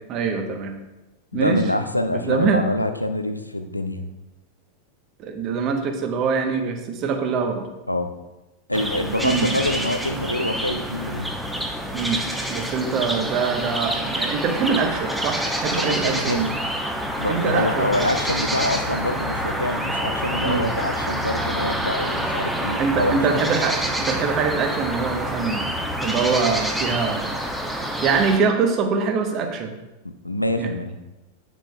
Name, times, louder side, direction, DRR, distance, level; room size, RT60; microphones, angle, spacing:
voice 1, 0.1-0.7 1.3-1.6 2.1-2.6 5.2-7.6 9.2-9.5 11.9-12.2 12.5-16.5 17.3-17.9 20.4-20.6 22.8-25.7 26.0-27.3 28.0-29.7 30.6-30.7, right 5 dB, 35° right, 5 dB, 0.9 m, -23 dB
voice 2, 1.3-4.1 7.9-8.1 8.7-11.3 15.7-16.5 17.2-23.4 30.0-30.9, left 1 dB, 85° left, 8 dB, 0.4 m, -25 dB
sound 1, 8.7-28.4, equal, 5° right, 0.8 m, -27 dB
8.5 x 6.1 x 2.2 m, 1.0 s
figure-of-eight pair, 90°, 0 cm